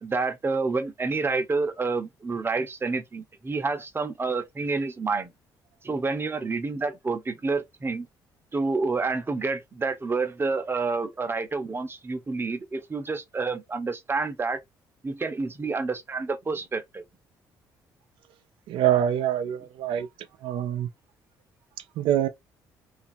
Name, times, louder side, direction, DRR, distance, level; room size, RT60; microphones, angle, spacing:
voice 1, 0.0-5.3 5.8-8.1 8.5-14.6 15.0-17.0, right 4 dB, 25° right, 0.8 m, -28 dB
voice 2, 18.7-20.1 20.4-20.9 22.0-22.3, right 11 dB, 70° right, 0.5 m, -24 dB
2.8 x 2.6 x 2.6 m
supercardioid pair, 60°, 9 cm